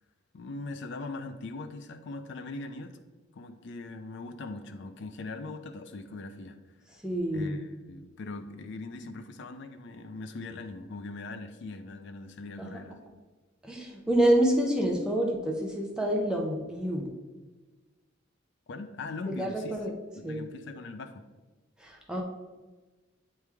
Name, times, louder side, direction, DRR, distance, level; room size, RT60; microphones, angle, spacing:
voice 1, 0.3-3.0 3.3-6.6 7.3-13.0 18.7-20.0 20.2-21.2, left 3 dB, 65° left, 7 dB, 0.4 m, -41 dB
voice 2, 7.0-7.6 12.6-12.7 13.6-17.1 19.3-19.9 20.2-20.5 21.8-22.2, right 1 dB, 5° right, 0 dB, 0.6 m, -27 dB
8.6 x 3.2 x 3.4 m, 1.2 s
head